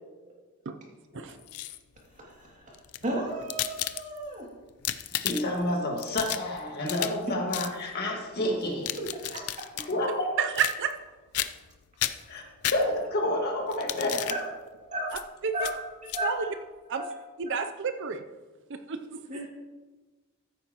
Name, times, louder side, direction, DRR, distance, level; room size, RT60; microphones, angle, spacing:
sound 1, 1.3-2.0 2.7-4.3 4.7-5.6 6.0-7.2 7.5-7.7 8.6-9.9 10.5-11.1 11.3-11.7 12.0-13.2 13.7-14.4 15.1-15.2 15.6-15.7 16.1-16.2, left 13 dB, 80° left, 0.5 m, -33 dB
voice 1, 2.2-2.6 3.0-4.5 9.1-9.7 14.3-14.4 14.9-15.2 15.5-15.8 16.1-16.5 17.0-17.2 17.5-17.6 19.3-19.5, right 1 dB, 35° right, -2 dB, 2.5 m, -34 dB
voice 2, 5.1-8.9 9.9-10.3 12.3-12.4 12.7-14.3, left 1 dB, 45° left, 1 dB, 1.8 m, -29 dB
voice 3, 10.4-10.9 15.4-15.5 16.2-16.4 16.9-17.0 17.4-18.2 18.7-19.4, right 6 dB, 55° right, 8 dB, 0.5 m, -30 dB
14.5 x 8.7 x 3.0 m, 1.3 s
head